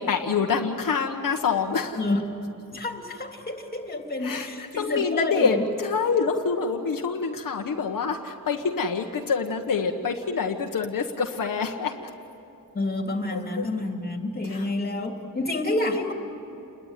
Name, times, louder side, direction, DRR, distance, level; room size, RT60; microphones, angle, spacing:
voice 1, 0.0-2.0 4.2-12.1 13.3-13.7 14.4-14.7, left 5 dB, 70° left, 2 dB, 1.4 m, -26 dB
voice 2, 2.7-5.6 12.7-16.1, left 2 dB, 25° left, 3 dB, 3.1 m, -29 dB
29.5 x 22.0 x 9.2 m, 2.9 s
wide cardioid pair, 135°, 34 cm